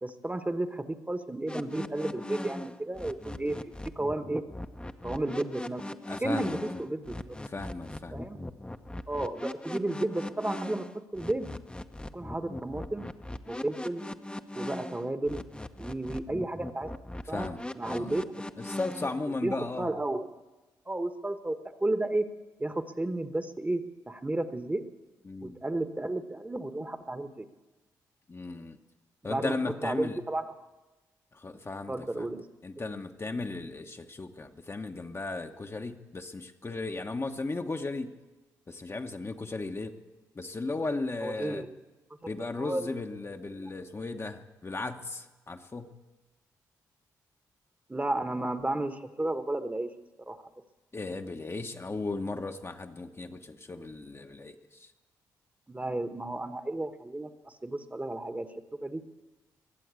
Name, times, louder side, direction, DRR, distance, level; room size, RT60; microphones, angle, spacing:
voice 1, 0.0-4.4 5.0-5.8 6.2-7.4 8.1-8.4 9.1-10.8 11.1-11.5 12.1-13.1 13.5-14.0 14.5-15.4 15.8-16.9 17.3-17.5 17.7-18.2 19.4-20.3 20.9-22.3 22.6-24.8 25.4-27.5 29.2-30.4 31.9-32.4 41.2-41.8 42.2-42.3 42.6-42.9 43.5-43.7 47.9-49.9 50.3-50.4 55.7-58.5 58.8-59.0, right 2 dB, 20° right, 9 dB, 1.3 m, -33 dB
sound 1, 1.5-19.2, left 1 dB, 10° left, 0.9 m, -39 dB
voice 2, 6.0-6.6 7.5-8.2 17.3-17.6 17.8-18.2 18.6-20.0 25.2-25.6 28.3-28.8 29.2-30.2 31.3-32.3 32.6-38.1 38.7-39.9 40.3-41.6 42.3-45.9 50.9-54.9, left 3 dB, 30° left, 4 dB, 1.1 m, -36 dB
22.0 x 7.8 x 8.3 m, 1.2 s
hypercardioid pair, 45°, 8 cm